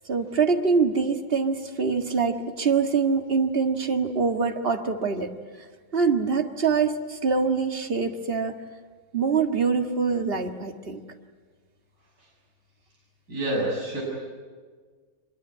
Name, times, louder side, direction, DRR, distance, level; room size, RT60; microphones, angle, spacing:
voice 1, 0.1-5.3 5.9-8.6 9.1-11.0, right 5 dB, 30° right, 5 dB, 1.8 m, -24 dB
voice 2, 13.3-14.0, right 1 dB, 50° right, -4 dB, 7.4 m, -27 dB
24.5 x 22.5 x 9.6 m, 1.5 s
omnidirectional pair, 2.0 m